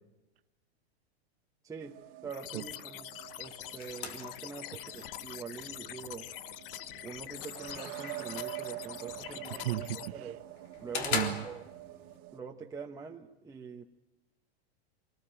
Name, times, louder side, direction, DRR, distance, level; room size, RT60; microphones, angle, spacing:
voice 1, 1.6-3.1 3.4-6.3 7.0-10.4 10.8-11.6 12.3-13.9, right 5 dB, 10° right, 0 dB, 1.1 m, -44 dB
sound 1, 1.8-12.4, right 17 dB, 45° right, 1.7 m, -47 dB
sound 2, 2.3-10.1, left 15 dB, 60° left, 0.9 m, -44 dB
sound 3, 3.2-12.2, left 5 dB, 85° left, 3.7 m, -43 dB
voice 2, 9.2-9.9 11.1-11.4, right 15 dB, 70° right, 8 dB, 1.1 m, -34 dB
25.5 x 19.5 x 9.0 m, 1.0 s
hypercardioid pair, 130°, 31 cm